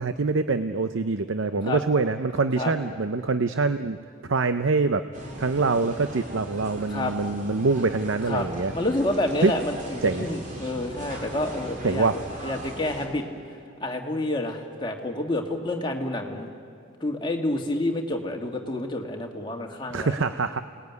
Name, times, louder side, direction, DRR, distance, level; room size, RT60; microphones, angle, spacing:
voice 1, 0.0-4.0 4.3-5.0 5.4-8.7 9.4-9.5 10.0-10.3 11.8-12.2 19.9-20.6, right 3 dB, 70° right, 10 dB, 0.7 m, -24 dB
sound 1, 5.1-13.1, right 1 dB, 40° right, 3.9 m, -39 dB
voice 2, 8.7-12.1 12.4-13.3 13.8-16.5 17.0-20.2, left 1 dB, 20° left, 2 dB, 2.2 m, -28 dB
29.0 x 19.5 x 9.6 m, 2.3 s
head